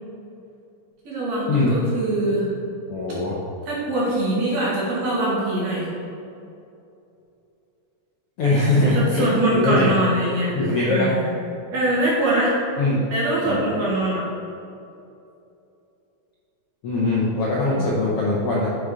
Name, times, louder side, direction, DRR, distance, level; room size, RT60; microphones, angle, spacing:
voice 1, 1.0-2.5 3.7-5.9 8.8-10.5 10.8-11.3 11.7-12.5 13.1-14.2 17.7-17.9, right 1 dB, 50° right, -6 dB, 3.2 m, -23 dB
voice 2, 2.9-3.4 8.4-9.9 10.5-11.1 12.8-13.0 13.4-13.6 16.8-18.8, left 2 dB, 85° left, -6 dB, 1.2 m, -21 dB
7.0 x 6.5 x 4.9 m, 2.7 s
omnidirectional pair, 4.2 m